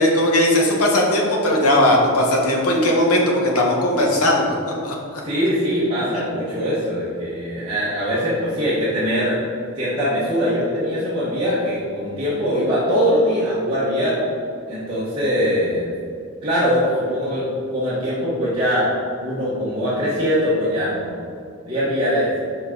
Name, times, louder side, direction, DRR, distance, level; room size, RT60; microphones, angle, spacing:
voice 1, 0.0-4.5 4.8-4.9 6.1-6.2, left 1 dB, 80° left, -1 dB, 1.2 m, -18 dB
voice 2, 5.2-9.4 9.8-14.2 14.7-15.9 16.4-18.8 19.2-21.2 21.6-22.3, equal, 25° right, -11 dB, 1.2 m, -22 dB
6.1 x 5.1 x 3.8 m, 2.3 s
head